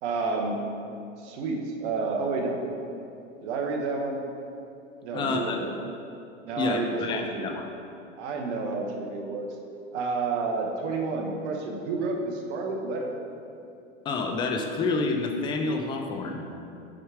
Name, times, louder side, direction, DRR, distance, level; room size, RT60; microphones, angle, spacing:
voice 1, 0.0-0.7 1.2-2.6 3.4-4.2 5.0-5.7 6.4-7.6 8.2-9.4 9.9-13.1, right 3 dB, 60° right, 1 dB, 1.1 m, -30 dB
voice 2, 5.1-5.6 6.6-7.6 14.1-16.4, left 3 dB, 15° left, 3 dB, 0.3 m, -28 dB
6.4 x 4.7 x 4.7 m, 2.6 s
hypercardioid pair, 125°, 38 cm